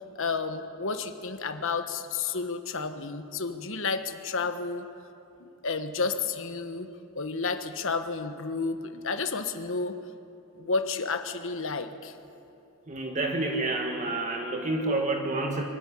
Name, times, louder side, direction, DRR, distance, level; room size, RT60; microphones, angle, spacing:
voice 1, 0.1-4.9 5.4-6.9 7.1-9.9 10.5-12.1, left 4 dB, 60° left, 8 dB, 1.3 m, -31 dB
voice 2, 12.9-15.6, right 2 dB, 35° right, 2 dB, 1.6 m, -29 dB
24.0 x 13.5 x 10.0 m, 2.7 s
head